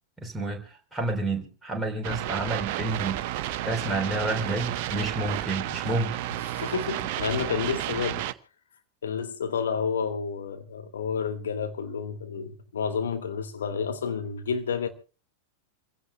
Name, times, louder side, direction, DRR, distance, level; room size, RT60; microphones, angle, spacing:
voice 1, 0.2-3.2 3.6-6.2, right 2 dB, 5° right, 3.7 m, -30 dB
sound 1, 2.0-8.3, right 14 dB, 50° right, 0.9 m, -32 dB
voice 2, 6.4-8.3 9.0-14.9, left 6 dB, 65° left, 2.2 m, -30 dB
28.0 x 16.5 x 2.2 m
figure-of-eight pair, 90°, 0 cm